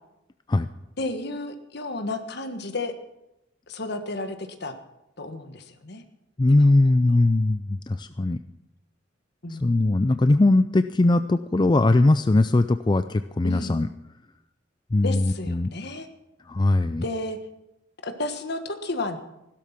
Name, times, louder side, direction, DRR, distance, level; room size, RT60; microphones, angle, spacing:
voice 1, 1.0-2.9 3.7-4.7 5.2-6.0 6.5-7.2 9.4-9.8 13.4-13.8 15.0-16.1 17.0-17.4 18.0-19.2, left 2 dB, 60° left, 8 dB, 1.5 m, -32 dB
voice 2, 6.4-8.4 9.6-13.9 14.9-15.7 16.5-17.0, left 2 dB, 25° left, 10 dB, 0.4 m, -20 dB
16.0 x 12.5 x 5.9 m, 0.91 s
head